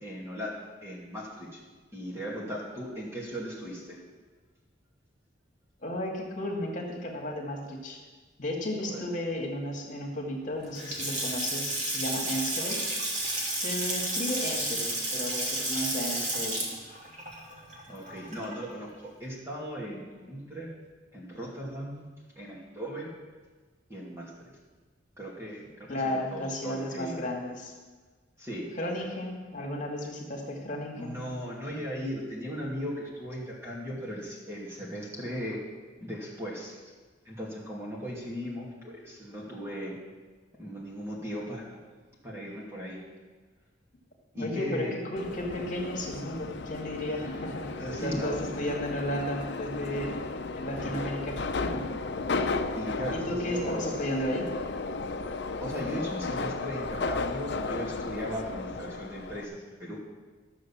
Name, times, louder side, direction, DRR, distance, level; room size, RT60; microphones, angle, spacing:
voice 1, 0.0-0.5 0.8-1.6 1.9-4.0 8.8-9.0 17.9-20.7 21.1-22.1 22.4-23.1 23.9-24.5 25.2-27.2 28.4-28.7 31.0-35.6 36.0-36.9 37.2-40.0 40.6-41.8 42.2-43.0 44.3-44.9 47.2-47.3 47.8-48.4 50.8-51.3 52.7-53.8 55.6-60.0, equal, 15° right, -5 dB, 2.6 m, -37 dB
voice 2, 5.8-8.0 8.4-12.8 13.5-16.6 25.9-27.7 28.8-31.2 44.4-47.7 48.0-50.1 50.5-51.9 52.9-54.5, left 1 dB, 40° left, -1 dB, 2.2 m, -34 dB
Water tap faucet / Sink (filling or washing) / Splash splatter, 10.6-18.7, right 1 dB, 40° right, 2.5 m, -32 dB
Subway metro underground, 45.2-59.4, left 3 dB, 60° left, 0.6 m, -34 dB
13.5 x 6.5 x 7.4 m, 1.4 s
head